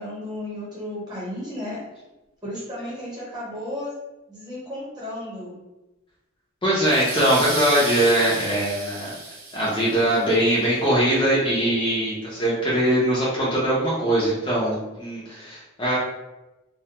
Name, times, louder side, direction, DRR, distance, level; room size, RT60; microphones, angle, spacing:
voice 1, 0.0-1.8 2.4-3.9 4.3-5.5, left 1 dB, 20° right, -7 dB, 0.9 m, -33 dB
voice 2, 6.6-9.1 9.5-16.0, right 1 dB, 25° left, -8 dB, 0.5 m, -21 dB
sound 1, 6.8-10.3, right 3 dB, 85° right, 0.7 m, -33 dB
2.3 x 2.2 x 2.8 m, 1.0 s
head